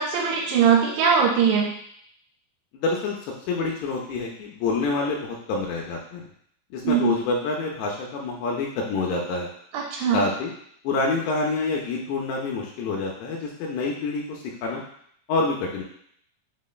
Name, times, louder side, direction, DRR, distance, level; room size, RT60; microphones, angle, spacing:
voice 1, 0.0-1.7 6.8-7.1 9.7-10.2, right 7 dB, 85° right, -2 dB, 2.8 m, -21 dB
voice 2, 2.7-3.2 3.5-6.3 6.7-9.5 10.1-10.5 10.8-14.8 15.3-15.8, left 3 dB, 85° left, -2 dB, 2.7 m, -27 dB
6.4 x 3.1 x 2.3 m, 0.66 s
omnidirectional pair, 4.8 m